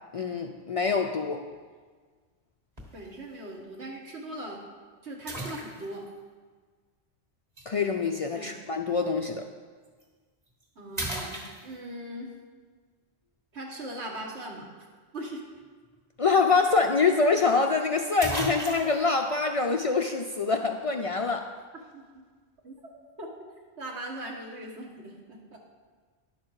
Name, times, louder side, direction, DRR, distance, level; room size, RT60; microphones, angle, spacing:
voice 1, 0.1-1.4 7.7-9.5 16.2-21.5, left 4 dB, 65° left, 4 dB, 0.3 m, -25 dB
sound 1, 2.8-3.1 3.7-3.8 5.3-6.1 7.6-7.7 9.8-10.0 10.5-10.6 11.0-12.0 16.2-16.3 16.5-16.6 17.7-17.8 18.2-19.1, right 1 dB, 35° right, 1.7 m, -35 dB
voice 2, 2.9-4.6 5.0-6.0 8.3-8.6 10.7-12.3 13.5-14.7 15.1-15.4 21.9-22.0 22.6-22.7 23.2-23.3 23.8-25.6, right 1 dB, 70° right, 0 dB, 1.8 m, -39 dB
11.0 x 6.4 x 4.7 m, 1.5 s
omnidirectional pair, 1.2 m